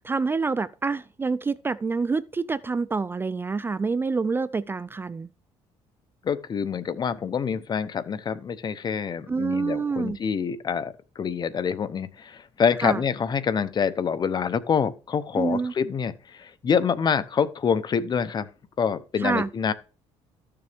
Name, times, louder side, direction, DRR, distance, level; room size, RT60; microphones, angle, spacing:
voice 1, 0.0-5.3 9.3-10.2 12.8-13.0 15.3-15.7 19.2-19.5, right 4 dB, 20° right, 0.4 m, -27 dB
voice 2, 6.2-18.5 18.8-19.7, left 6 dB, 35° left, 0.9 m, -26 dB
13.5 x 6.9 x 3.5 m
cardioid pair, 110°, 12 cm